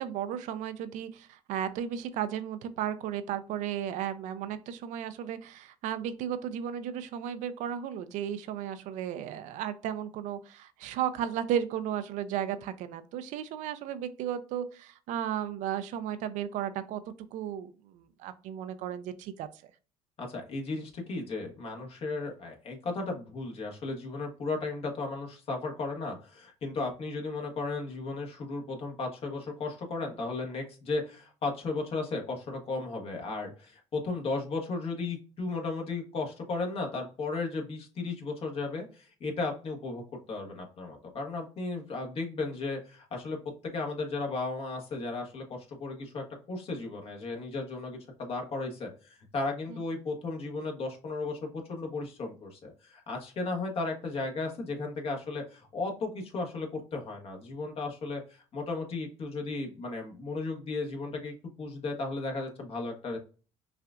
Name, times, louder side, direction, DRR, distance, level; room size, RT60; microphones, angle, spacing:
voice 1, 0.0-17.0 17.3-19.5 49.7-49.8, right 9 dB, 70° right, 11 dB, 0.5 m, -34 dB
voice 2, 20.2-40.0 40.3-43.4 43.6-63.2, left 3 dB, 50° left, 2 dB, 1.3 m, -35 dB
5.6 x 2.4 x 2.4 m, 0.37 s
supercardioid pair, 80°, 13 cm